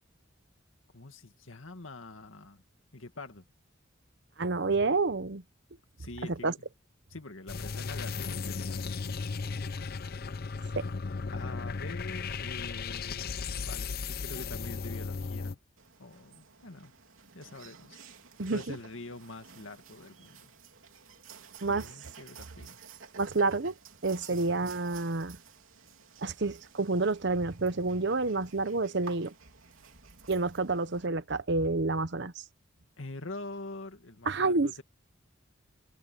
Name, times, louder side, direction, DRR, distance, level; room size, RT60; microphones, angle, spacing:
voice 1, 0.9-2.6 2.9-3.4 6.0-6.5 7.1-9.3 9.8-9.9 11.3-15.6 16.0-16.9 17.3-18.0 18.5-20.5 21.7-22.8 24.2-24.4 33.0-34.8, left 2 dB, 75° left, 2.2 m, -45 dB
voice 2, 4.4-5.4 6.4-6.5 10.8-10.9 18.4-18.7 21.6-21.8 23.1-23.7 24.0-25.4 26.2-29.3 30.3-32.4 34.3-34.7, right 3 dB, 60° right, 0.9 m, -29 dB
sound 1, 7.5-15.6, left 5 dB, 50° left, 0.6 m, -36 dB
sound 2, 15.8-31.1, right 6 dB, 85° right, 3.4 m, -53 dB
head